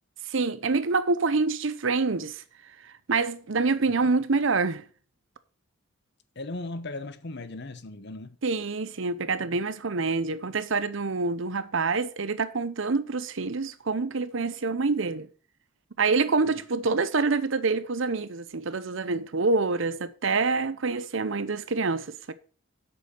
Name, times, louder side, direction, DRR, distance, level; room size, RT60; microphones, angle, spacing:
voice 1, 0.3-2.4 2.8-4.9 8.4-15.3 16.0-22.3, right 4 dB, 65° right, 0.8 m, -26 dB
voice 2, 6.4-8.4 16.4-16.5, left 2 dB, 55° left, 0.9 m, -37 dB
8.2 x 6.2 x 6.4 m
head